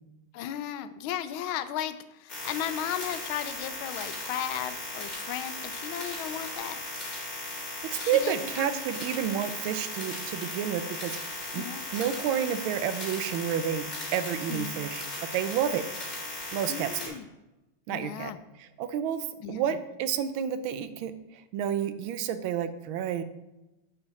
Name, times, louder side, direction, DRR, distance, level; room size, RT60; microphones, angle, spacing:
voice 1, 0.3-6.8 8.0-8.7 11.6-11.9 14.5-14.8 16.7-17.3 17.9-18.4 19.4-19.7, left 10 dB, 85° left, 12 dB, 1.4 m, -35 dB
sound 1, 2.3-17.1, left 1 dB, 35° left, 2.6 m, -37 dB
voice 2, 7.9-11.2 11.5-11.7 11.9-15.0 15.3-15.8 16.5-17.1 17.9-18.3 18.6-21.1 21.5-23.2, right 9 dB, 80° right, 11 dB, 1.4 m, -30 dB
8.3 x 5.6 x 4.0 m, 0.98 s
omnidirectional pair, 2.2 m